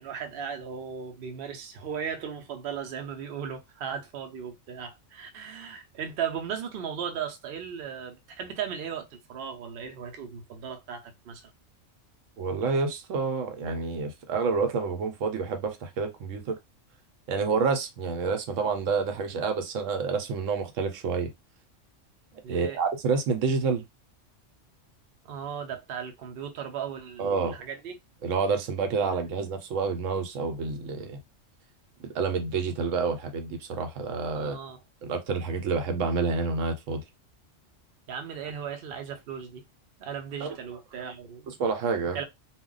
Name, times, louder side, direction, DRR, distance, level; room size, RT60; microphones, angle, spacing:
voice 1, 0.0-11.5 22.4-22.8 25.2-28.0 34.4-34.8 38.1-39.6 40.0-41.6 42.1-42.2, right 7 dB, 60° right, 0.7 m, -36 dB
voice 2, 12.4-16.6 17.3-21.3 22.5-23.8 27.2-27.6 28.2-31.2 32.1-34.6 35.0-37.0 40.4-40.6 41.0-41.1 41.5-42.2, right 4 dB, 80° right, 1.0 m, -28 dB
2.2 x 2.1 x 3.7 m
omnidirectional pair, 1.3 m